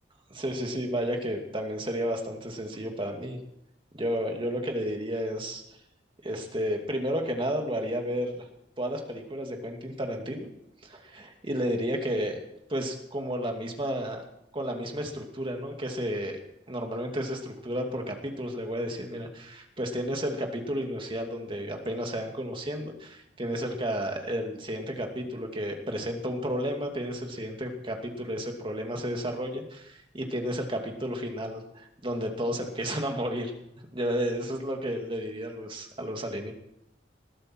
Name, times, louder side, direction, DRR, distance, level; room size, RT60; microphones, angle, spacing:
voice 1, 0.3-3.4 3.9-5.6 6.2-8.4 8.8-10.5 10.8-12.4 12.7-14.2 14.5-16.4 16.7-33.5 33.9-36.5, equal, 30° right, 3 dB, 2.5 m, -32 dB
20.5 x 13.5 x 4.7 m, 0.79 s
head